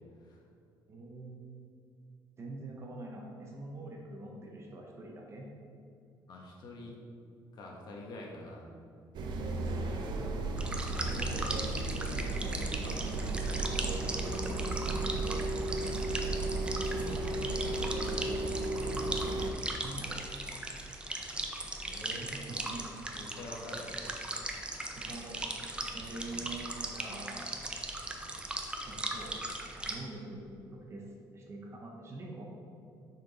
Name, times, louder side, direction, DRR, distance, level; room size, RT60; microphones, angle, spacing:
voice 1, 0.9-1.3 2.4-5.5 11.1-11.8 12.4-12.7 14.8-15.2 16.9-17.4 19.8-20.3 22.1-22.8 25.0-27.5 28.9-31.0 31.3-32.4, right 2 dB, 35° right, -1 dB, 0.8 m, -45 dB
voice 2, 6.3-7.0 7.5-8.7 12.8-13.6 21.8-22.2 22.5-22.6 23.0-24.2 26.2-26.4, left 1 dB, 55° left, -1 dB, 1.2 m, -46 dB
sound 1, 9.1-19.5, right 2 dB, 65° right, 0.6 m, -34 dB
sound 2, 10.6-29.9, right 2 dB, 10° right, 0.5 m, -39 dB
6.4 x 4.4 x 4.0 m, 2.6 s
cardioid pair, 135°, 8 cm